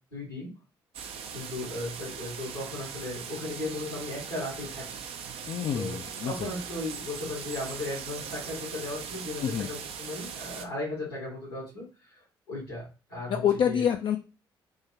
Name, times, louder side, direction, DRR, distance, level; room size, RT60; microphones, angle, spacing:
voice 1, 0.1-0.5 1.3-5.0 5.7-6.0 6.2-13.3 13.7-13.8, left 2 dB, 85° left, -7 dB, 1.6 m, -36 dB
sound 1, 0.9-10.7, right 7 dB, 55° right, 0.5 m, -40 dB
voice 2, 5.4-6.5 9.4-9.7 13.3-14.2, left 9 dB, 40° left, 5 dB, 0.4 m, -27 dB
3.6 x 2.6 x 2.9 m, 0.31 s
figure-of-eight pair, 45°, 12 cm